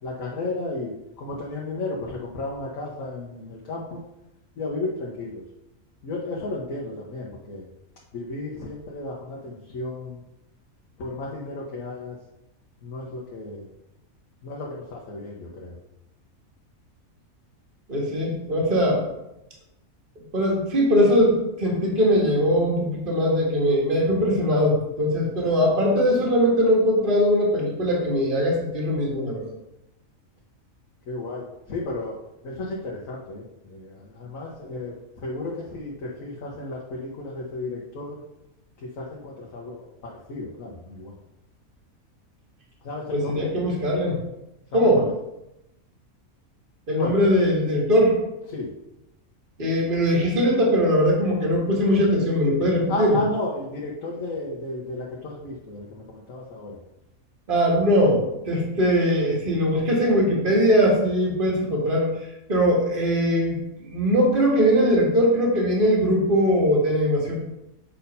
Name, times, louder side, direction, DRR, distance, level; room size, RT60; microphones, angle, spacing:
voice 1, 0.0-4.0 4.6-5.4 6.0-7.7 8.1-10.2 11.0-12.2 12.8-13.7 14.4-15.8 31.1-32.2 32.4-38.2 38.8-41.1 42.8-43.6 44.7-45.1 47.0-47.2 48.5-48.7 52.9-56.8, left 2 dB, 70° left, -3 dB, 1.5 m, -33 dB
voice 2, 17.9-19.0 20.3-29.5 43.1-44.2 44.7-45.0 46.9-48.2 49.6-53.2 57.5-62.1 62.5-67.4, equal, 40° right, -2 dB, 1.9 m, -21 dB
7.4 x 4.3 x 5.4 m, 0.89 s
omnidirectional pair, 1.5 m